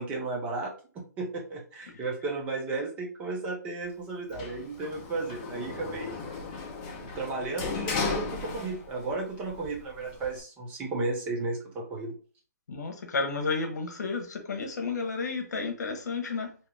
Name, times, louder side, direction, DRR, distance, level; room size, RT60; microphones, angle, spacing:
voice 1, 0.0-6.2 7.0-12.2, right 3 dB, 15° right, 0.5 m, -34 dB
Sliding door, 4.3-9.1 9.5-10.4, left 4 dB, 25° left, 0.7 m, -35 dB
voice 2, 12.7-16.5, left 4 dB, 75° left, 1.0 m, -32 dB
2.8 x 2.4 x 3.2 m
hypercardioid pair, 160°, 9 cm